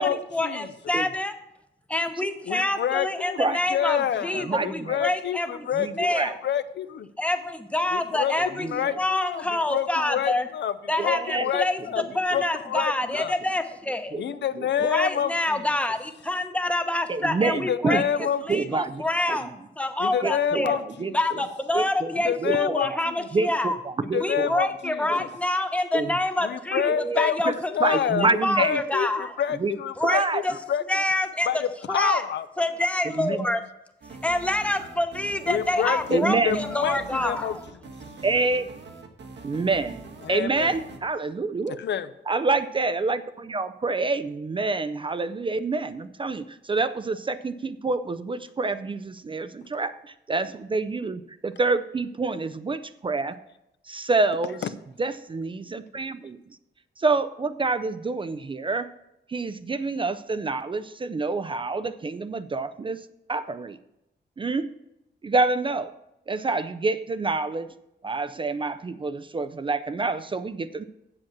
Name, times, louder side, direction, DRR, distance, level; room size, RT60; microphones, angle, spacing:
voice 1, 0.0-1.3 1.9-5.7 5.9-6.4 7.2-8.7 9.0-10.5 10.9-14.2 14.8-20.8 21.1-23.8 24.2-29.3 30.0-30.5 30.9-31.6 31.9-32.3 32.6-33.6 34.2-37.6, left 1 dB, 5° left, 7 dB, 0.8 m, -27 dB
voice 2, 2.5-7.1 7.9-8.3 8.6-10.7 11.0-12.0 12.3-13.3 14.1-15.6 17.5-18.8 20.0-21.2 22.1-22.9 23.2-23.3 24.1-25.3 26.4-30.4 30.7-30.8 31.5-31.6 31.9-32.5 33.5-33.6 35.5-37.6 37.8-37.9 40.2-40.7 41.7-42.1, left 9 dB, 75° left, 13 dB, 0.6 m, -28 dB
voice 3, 4.4-5.0 5.8-6.3 8.6-8.9 11.0-11.5 14.1-14.2 14.6-14.7 17.1-18.0 18.5-19.0 19.3-19.4 20.2-21.1 21.7-22.1 22.4-22.8 23.3-23.7 24.1-24.7 25.9-26.1 26.9-27.5 27.8-28.8 29.6-29.7 30.0-30.4 33.1-33.5 36.1-36.6 38.2-38.6 39.4-40.0 40.3-41.8 42.3-50.0 50.3-53.4 53.9-54.6 55.0-56.4 57.0-58.9 59.3-63.0 63.3-63.8 64.4-64.7 65.2-65.9 66.3-67.7 68.0-70.8, right 3 dB, 30° right, 12 dB, 0.4 m, -27 dB
sound 1, 34.0-41.0, right 3 dB, 75° right, 1.4 m, -43 dB
7.7 x 7.4 x 7.2 m, 0.88 s
wide cardioid pair, 155°, 18 cm